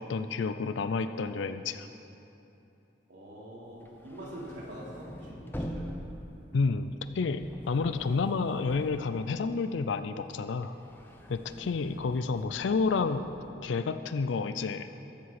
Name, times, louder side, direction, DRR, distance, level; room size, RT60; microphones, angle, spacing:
voice 1, 0.0-1.9 6.5-7.4 7.7-10.7 11.3-13.3 13.6-14.9, left 4 dB, 80° left, 10 dB, 0.4 m, -30 dB
voice 2, 3.1-5.9 11.5-11.9, right 1 dB, 80° right, -6 dB, 3.1 m, -45 dB
sound 1, 3.7-9.8 10.2-13.5, equal, 10° left, 0.8 m, -44 dB
14.0 x 7.7 x 5.9 m, 2.9 s
head